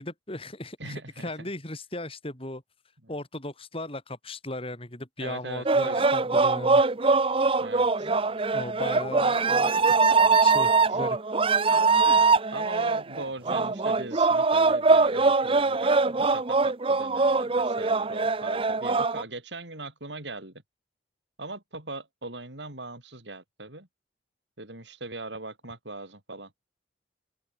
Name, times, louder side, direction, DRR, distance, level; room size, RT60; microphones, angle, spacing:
voice 1, 0.0-2.6 3.1-6.8 7.4-7.5 8.5-10.0 10.4-11.2, left 1 dB, 30° left, 5.6 m, -37 dB
voice 2, 0.8-1.3 3.0-3.1 5.2-6.0 7.6-8.1 12.5-20.6 21.4-23.9 24.6-26.5, right 2 dB, 80° right, 6.5 m, -40 dB
sound 1, 5.7-19.2, right 4 dB, 30° right, 0.8 m, -22 dB
open air
head